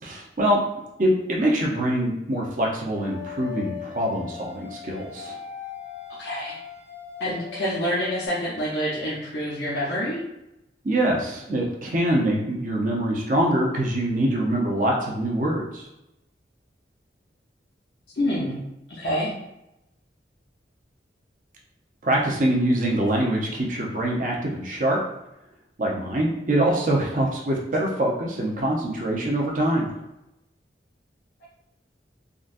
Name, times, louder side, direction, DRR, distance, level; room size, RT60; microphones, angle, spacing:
voice 1, 0.0-0.6 1.0-5.3 10.8-15.9 22.0-25.0 25.8-29.9, right 1 dB, 45° right, -2 dB, 0.6 m, -24 dB
sound 1, 2.9-8.3, left 9 dB, 75° right, 0.9 m, -39 dB
voice 2, 6.2-6.6 7.2-10.2 18.2-18.6 18.9-19.3, equal, 75° left, -7 dB, 0.7 m, -27 dB
3.8 x 2.2 x 2.5 m, 0.87 s
head